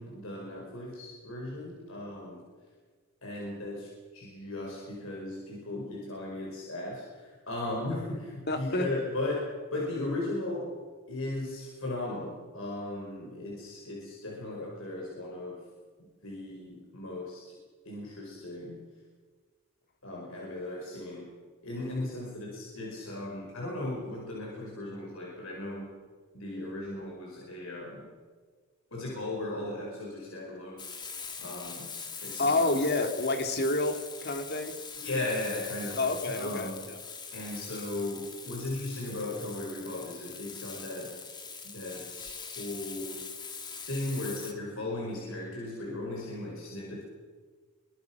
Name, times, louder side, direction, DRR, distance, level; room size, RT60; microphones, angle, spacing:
voice 1, 0.0-2.5 3.2-10.8 11.1-15.6 16.0-17.6 17.9-18.8 20.0-21.3 21.6-25.9 26.3-28.1 28.9-31.9 32.2-32.9 35.0-36.9 37.3-41.2 41.6-43.3 43.7-47.0, left 2 dB, 60° left, -1 dB, 5.2 m, -37 dB
voice 2, 8.5-8.9 32.4-34.8 36.0-37.0, left 2 dB, 45° left, 5 dB, 2.8 m, -29 dB
Frying (food), 30.8-44.5, left 5 dB, 20° left, 1.8 m, -42 dB
27.0 x 23.0 x 6.1 m, 1.5 s
head